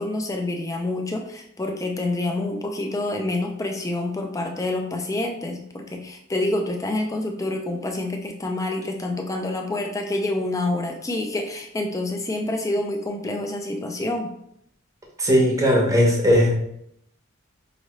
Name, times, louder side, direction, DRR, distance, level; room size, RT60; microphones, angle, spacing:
voice 1, 0.0-14.3, left 2 dB, 15° left, 3 dB, 0.4 m, -27 dB
voice 2, 15.2-16.5, equal, 15° right, -1 dB, 0.8 m, -18 dB
4.8 x 2.7 x 3.1 m, 0.74 s
head